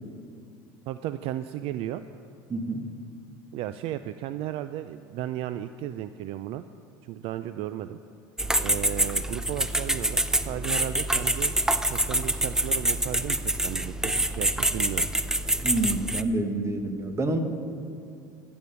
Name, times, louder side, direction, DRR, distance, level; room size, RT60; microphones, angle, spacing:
voice 1, 0.9-2.0 3.5-6.6 7.0-8.0 8.6-11.5 11.8-15.1, right 12 dB, 60° right, 12 dB, 0.4 m, -34 dB
voice 2, 2.5-2.9 15.6-17.4, right 2 dB, 25° right, 7 dB, 1.3 m, -28 dB
sound 1, 8.4-16.2, right 1 dB, 5° right, 0.5 m, -26 dB
14.5 x 7.0 x 6.9 m, 2.4 s
supercardioid pair, 95°, 11 cm